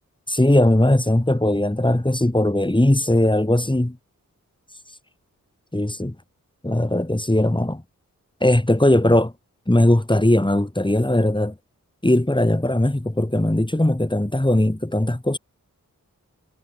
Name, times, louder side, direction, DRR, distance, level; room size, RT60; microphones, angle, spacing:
voice 1, 0.3-4.0 5.7-6.1 6.6-7.8 8.4-9.3 9.7-11.5 12.0-15.4, left 1 dB, 15° left, 6.7 m, -19 dB
wide cardioid pair, 80°, 32 cm